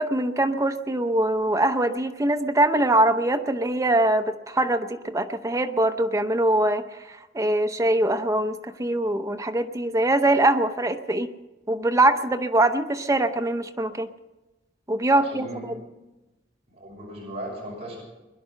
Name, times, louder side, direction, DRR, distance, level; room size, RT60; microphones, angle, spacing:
voice 1, 0.0-6.8 7.3-11.3 11.7-14.1 14.9-15.5, right 1 dB, 20° right, 7 dB, 0.7 m, -23 dB
voice 2, 15.1-15.7 16.7-18.0, right 1 dB, 35° right, -4 dB, 5.9 m, -37 dB
21.5 x 11.0 x 5.6 m, 1.1 s
head